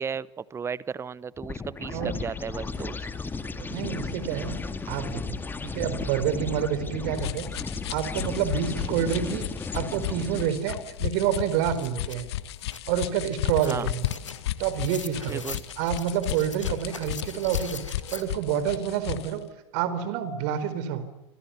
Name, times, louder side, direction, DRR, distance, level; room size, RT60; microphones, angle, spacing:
voice 1, 0.0-3.1 13.6-13.9 15.3-15.6, right 6 dB, 15° right, 22 dB, 0.9 m, -34 dB
sound 1, 1.4-10.8, left 4 dB, 15° left, 2.0 m, -35 dB
voice 2, 3.6-4.6 4.9-7.5 7.9-9.5 9.7-12.3 12.9-14.0 14.6-15.4 15.8-17.8 18.1-19.4 19.7-21.0, right 9 dB, 50° right, 13 dB, 4.3 m, -28 dB
sound 2, 7.1-19.4, left 14 dB, 60° left, 1.5 m, -34 dB
sound 3, 10.9-11.0 11.3-18.2, left 4 dB, 85° left, 2.2 m, -43 dB
28.0 x 26.0 x 7.1 m, 1.0 s
figure-of-eight pair, 90°, 16 cm